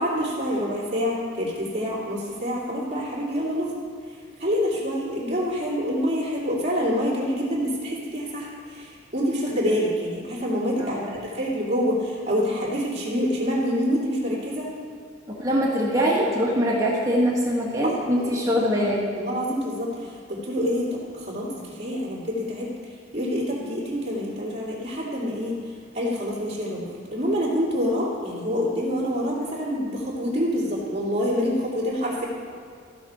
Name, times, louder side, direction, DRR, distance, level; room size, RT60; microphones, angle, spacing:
voice 1, 0.0-3.7 4.4-8.8 9.1-14.6 17.8-18.5 19.2-19.9 20.3-21.5 21.8-22.7 23.1-25.5 25.9-32.2, equal, 35° right, -6 dB, 2.5 m, -26 dB
voice 2, 10.8-11.2 15.4-19.0, equal, 20° right, -5 dB, 1.6 m, -23 dB
15.0 x 6.1 x 4.3 m, 2.2 s
head